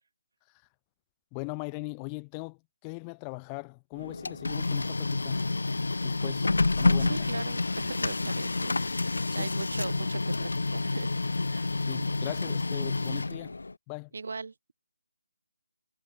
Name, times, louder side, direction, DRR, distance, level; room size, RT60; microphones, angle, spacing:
voice 1, 1.3-5.5 6.0-7.3 9.3-9.5 11.9-13.6 13.9-14.1, left 38 dB, 10° left, 0.7 m, -40 dB
Printer, 4.0-13.7, left 3 dB, 85° left, 0.3 m, -29 dB
voice 2, 7.0-11.1 11.5-11.7 14.1-14.7, right 4 dB, 55° right, 2.3 m, -39 dB
hypercardioid pair, 175°, 0 cm